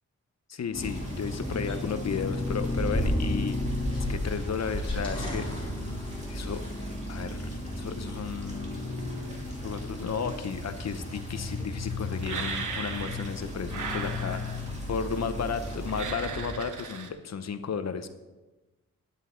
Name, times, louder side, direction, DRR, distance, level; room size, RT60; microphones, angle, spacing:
voice 1, 0.5-3.6 4.1-5.5 6.3-6.6 7.1-7.5 7.8-8.8 9.6-14.6 14.9-18.1, left 6 dB, 60° left, 10 dB, 0.9 m, -33 dB
sound 1, 0.7-16.5, left 1 dB, 15° left, 4.4 m, -33 dB
sound 2, 0.8-16.0, right 1 dB, 20° right, 2.4 m, -50 dB
sound 3, 12.2-13.4 13.7-14.7 15.9-17.1, right 5 dB, 75° right, 1.2 m, -36 dB
12.0 x 10.0 x 3.9 m, 1.1 s
wide cardioid pair, 160°, 30 cm